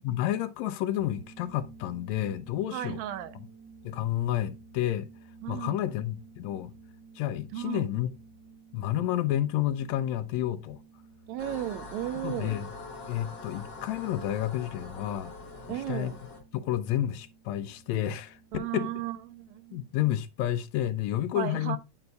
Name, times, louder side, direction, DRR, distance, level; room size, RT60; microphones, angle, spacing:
voice 1, 0.0-3.0 3.8-5.1 5.5-6.7 7.2-8.2 8.7-10.8 12.2-12.7 13.1-15.3 15.7-16.1 16.5-18.9 19.7-21.8, left 12 dB, 80° left, 1.8 m, -30 dB
sound 1, 1.0-19.7, right 4 dB, 65° right, 1.1 m, -54 dB
voice 2, 2.7-3.4 5.4-5.8 7.5-7.8 11.3-12.6 15.7-16.2 18.5-19.9 21.4-21.8, right 12 dB, 85° right, 2.0 m, -35 dB
sound 2, 11.4-16.4, left 3 dB, 50° left, 1.5 m, -44 dB
7.8 x 7.0 x 2.3 m
omnidirectional pair, 3.3 m